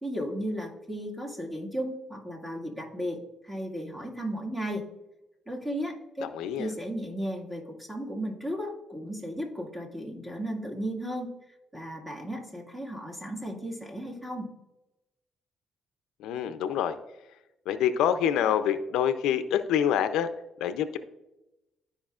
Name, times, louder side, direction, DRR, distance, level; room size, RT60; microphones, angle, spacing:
voice 1, 0.0-4.8 5.5-6.2 6.6-11.3 11.7-14.5, equal, 10° right, -1 dB, 1.8 m, -35 dB
voice 2, 6.2-6.7 16.2-16.9 17.7-20.3 20.6-21.0, left 9 dB, 90° left, 11 dB, 0.5 m, -26 dB
12.5 x 4.9 x 2.4 m, 0.96 s
cardioid pair, 90°, 0 cm